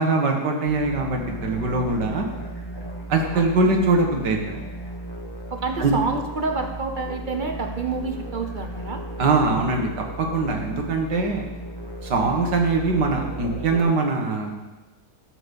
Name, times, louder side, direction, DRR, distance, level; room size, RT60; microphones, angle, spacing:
voice 1, 0.0-2.3 3.1-4.6 5.8-5.9 9.2-9.9 10.2-11.4 12.0-14.5, right 3 dB, 85° right, 2 dB, 2.1 m, -22 dB
sound 1, 0.7-13.8, right 1 dB, 15° left, 1.5 m, -35 dB
voice 2, 3.3-3.7 5.5-9.0, right 4 dB, 45° right, 5 dB, 0.7 m, -28 dB
12.0 x 6.9 x 5.4 m, 1.1 s
omnidirectional pair, 1.8 m